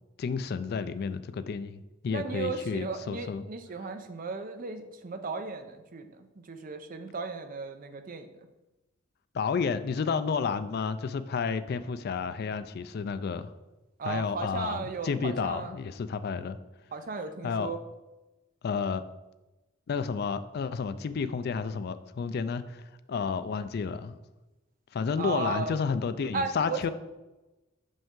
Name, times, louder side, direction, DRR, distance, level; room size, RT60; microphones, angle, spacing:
voice 1, 0.2-3.4 9.3-13.5 14.0-16.6 17.4-17.7 18.6-19.0 19.9-24.1 24.9-26.9, left 5 dB, 50° left, 13 dB, 0.3 m, -31 dB
voice 2, 2.1-6.1 6.4-8.3 14.0-15.7 16.9-17.8 25.2-25.8 26.3-26.9, right 4 dB, 45° right, 7 dB, 0.6 m, -35 dB
6.6 x 5.2 x 3.7 m, 1.1 s
head